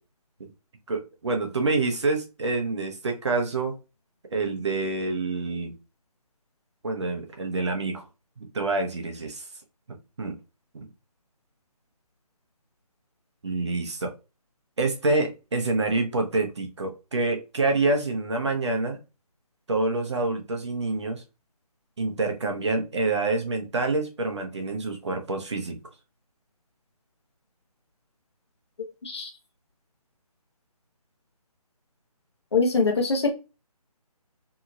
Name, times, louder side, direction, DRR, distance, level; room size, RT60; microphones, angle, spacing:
voice 1, 0.9-3.7 4.3-5.7 6.8-8.0 8.4-9.5 10.2-10.4 10.7-10.9 13.4-14.1 14.8-19.0 19.7-21.2 22.0-25.8, right 3 dB, 45° right, 0.7 m, -27 dB
voice 2, 32.5-33.3, left 4 dB, 45° left, 0.9 m, -23 dB
2.8 x 2.8 x 2.4 m
figure-of-eight pair, 155°, 20 cm